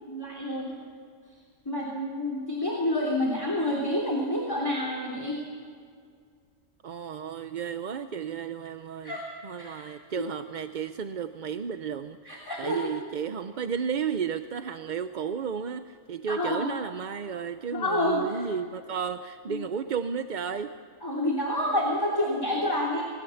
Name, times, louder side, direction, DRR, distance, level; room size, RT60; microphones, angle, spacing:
voice 1, 0.1-0.8 1.6-5.4 9.0-9.2 9.6-9.9 12.2-12.9 16.3-16.7 17.7-18.4 19.5-19.6 21.0-23.0, left 1 dB, 15° left, -3 dB, 3.1 m, -28 dB
voice 2, 6.8-9.2 9.4-20.7, right 7 dB, 45° right, 9 dB, 0.6 m, -33 dB
26.5 x 20.5 x 7.1 m, 2.1 s
omnidirectional pair, 1.4 m